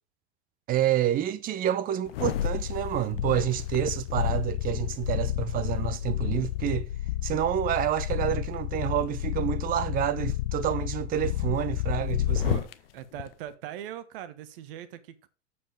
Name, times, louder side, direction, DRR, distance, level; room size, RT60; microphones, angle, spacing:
voice 1, 0.7-6.9 7.2-12.6, right 11 dB, 25° right, 0.7 m, -28 dB
sound 1, 2.1-12.7 13.2-13.3, left 13 dB, 55° left, 0.7 m, -30 dB
voice 2, 12.3-12.7 12.9-15.3, right 11 dB, 50° right, 1.2 m, -41 dB
7.3 x 7.1 x 5.0 m
figure-of-eight pair, 90°, 36 cm